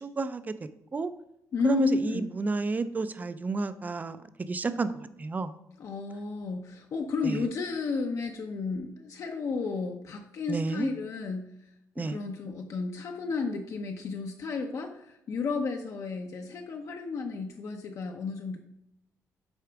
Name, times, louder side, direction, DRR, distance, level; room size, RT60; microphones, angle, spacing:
voice 1, 0.0-1.1 1.6-5.5 7.2-7.4 10.5-10.9 12.0-12.2, right 3 dB, 25° right, 12 dB, 0.4 m, -31 dB
voice 2, 1.5-2.2 5.8-11.5 12.0-18.6, left 4 dB, 55° left, 3 dB, 0.7 m, -32 dB
8.0 x 4.8 x 3.5 m, 0.82 s
cardioid pair, 105°, 7 cm